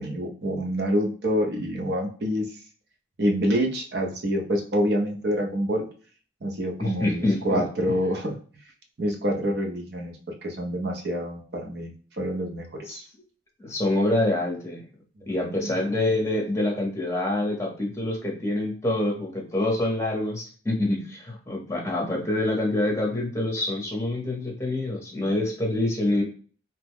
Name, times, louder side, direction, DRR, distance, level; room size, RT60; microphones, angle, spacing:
voice 1, 0.0-2.6 3.2-5.9 6.4-8.3 9.0-10.2 10.4-13.0 15.5-15.7, equal, 55° right, 2 dB, 0.7 m, -27 dB
voice 2, 6.8-7.6 12.9-13.0 13.6-14.8 15.3-26.2, left 1 dB, 15° left, -1 dB, 0.7 m, -26 dB
2.9 x 2.1 x 3.5 m, 0.41 s
head